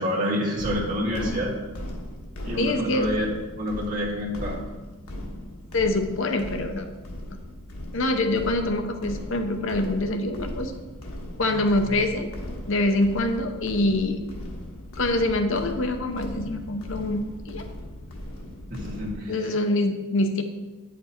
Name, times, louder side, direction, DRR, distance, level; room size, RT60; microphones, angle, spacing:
voice 1, 0.0-1.5 2.4-3.3 3.6-4.6 18.7-19.5, equal, 40° right, -5 dB, 2.1 m, -28 dB
sound 1, 0.6-19.1, left 1 dB, 85° left, 1.4 m, -38 dB
voice 2, 2.6-3.1 5.7-6.9 7.3-7.4 7.9-10.7 11.4-12.3 12.7-14.2 15.0-17.6 19.3-20.4, left 2 dB, 60° left, 6 dB, 0.7 m, -25 dB
9.3 x 6.0 x 4.4 m, 1.2 s
head